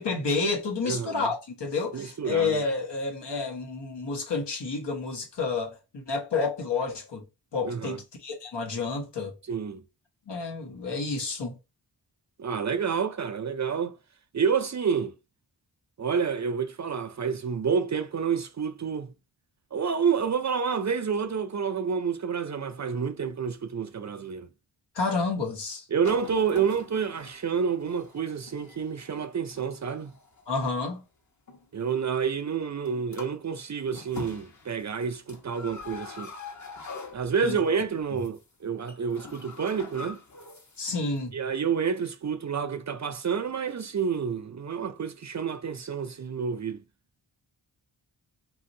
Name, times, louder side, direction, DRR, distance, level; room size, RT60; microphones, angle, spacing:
voice 1, 0.0-7.2 7.5-9.3 10.3-11.6 24.9-25.8 30.5-31.0 37.4-37.6 38.1-38.2 40.8-41.3, left 4 dB, 65° left, 1.2 m, -30 dB
voice 2, 0.8-1.3 1.9-2.6 7.6-8.0 9.5-9.8 12.4-13.9 14.3-15.1 16.0-19.1 19.7-24.5 25.9-30.1 31.7-36.3 37.1-40.2 41.3-46.8, right 6 dB, 40° right, 0.5 m, -29 dB
sound 1, 26.0-30.8 31.5-31.7 32.8-32.9 33.1-33.5 33.8-37.7 38.0-38.4 38.7-40.9 41.2-41.3, left 4 dB, 40° left, 1.1 m, -44 dB
3.0 x 2.7 x 2.6 m
cardioid pair, 45°, 44 cm